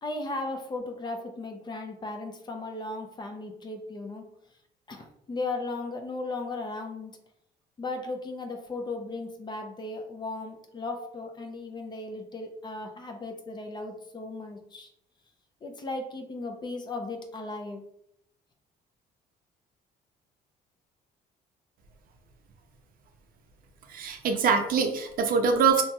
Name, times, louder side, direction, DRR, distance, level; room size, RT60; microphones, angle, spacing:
voice 1, 0.0-4.2 4.9-7.1 7.8-14.9 15.6-17.8, left 2 dB, 25° left, 4 dB, 0.4 m, -36 dB
voice 2, 23.9-25.8, right 5 dB, 60° right, 5 dB, 0.5 m, -24 dB
2.9 x 2.7 x 2.2 m, 0.76 s
cardioid pair, 110°, 17 cm